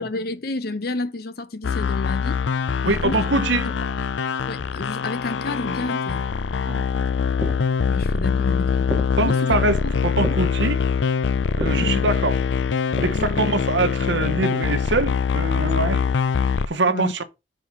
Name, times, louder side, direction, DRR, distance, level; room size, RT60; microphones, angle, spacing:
voice 1, 0.0-2.4 2.8-3.2 3.6-4.0 4.5-6.2 7.9-9.6 9.8-10.4 11.8-12.0 13.1-13.4 16.9-17.1, left 2 dB, 55° left, 0.8 m, -31 dB
sound 1, 1.6-16.7, left 6 dB, 75° left, 0.5 m, -23 dB
voice 2, 2.9-3.7 6.7-6.8 9.2-10.8 11.6-12.4 12.9-16.0 16.7-17.2, right 2 dB, 75° right, 1.0 m, -23 dB
sound 2, 7.4-13.2, equal, 5° right, 1.1 m, -35 dB
5.5 x 4.7 x 6.1 m
head